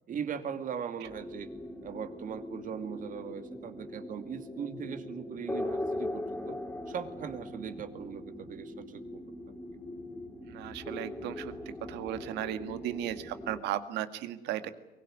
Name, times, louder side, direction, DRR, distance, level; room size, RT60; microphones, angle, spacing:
voice 1, 0.1-1.5 1.8-6.6 6.9-9.2, right 7 dB, 50° right, 9 dB, 2.5 m, -39 dB
sound 1, 1.0-13.6, left 1 dB, 10° left, 3.5 m, -40 dB
voice 2, 10.4-11.5 11.9-14.7, right 12 dB, 90° right, 11 dB, 1.9 m, -35 dB
23.5 x 20.5 x 9.7 m, 0.99 s
cardioid pair, 110°, 17 cm